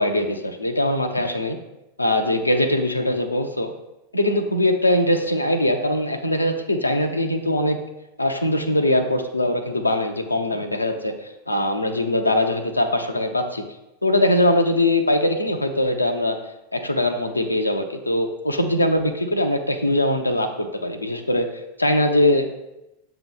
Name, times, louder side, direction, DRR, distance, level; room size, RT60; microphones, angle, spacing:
voice 1, 0.0-1.6 2.0-3.7 4.1-7.8 8.2-13.6 14.0-16.4 16.7-22.5, left 1 dB, 85° left, 6 dB, 0.6 m, -21 dB
7.3 x 3.0 x 5.6 m, 0.93 s
figure-of-eight pair, 90°, 0 cm